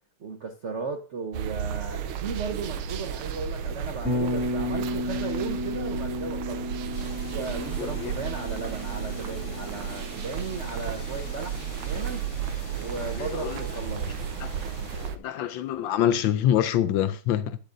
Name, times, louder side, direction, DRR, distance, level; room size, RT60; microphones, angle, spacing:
voice 1, 0.2-6.8 7.3-12.3 12.7-14.0, right 4 dB, 60° right, 0.7 m, -35 dB
sound 1, 1.3-15.2, right 8 dB, 85° right, 1.6 m, -33 dB
Bass guitar, 4.0-12.1, left 1 dB, 5° right, 1.6 m, -34 dB
sound 2, 6.9-15.1, left 5 dB, 45° left, 1.2 m, -46 dB
voice 2, 7.8-8.1 13.2-13.6 14.4-14.5 14.9-17.6, left 10 dB, 75° left, 1.2 m, -26 dB
12.0 x 9.1 x 2.6 m
omnidirectional pair, 2.3 m